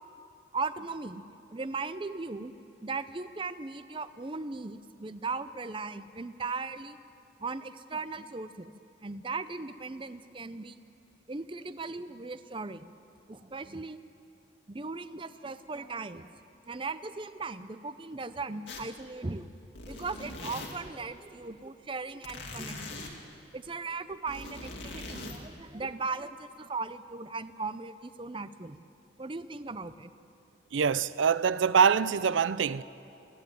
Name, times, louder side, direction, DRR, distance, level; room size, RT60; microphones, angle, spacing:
voice 1, 0.5-1.2 1.5-2.5 2.8-7.0 7.4-8.7 9.0-10.8 11.3-12.9 13.3-14.0 14.7-16.4 16.7-19.5 19.9-23.1 23.5-28.9 29.2-30.1, right 3 dB, 25° right, 0.6 m, -38 dB
sound 1, 18.7-19.0 19.4-21.0 22.2-23.1 24.1-25.4, left 2 dB, 75° left, 2.6 m, -41 dB
voice 2, 30.7-32.8, right 6 dB, 90° right, 0.5 m, -24 dB
27.5 x 10.5 x 9.2 m
head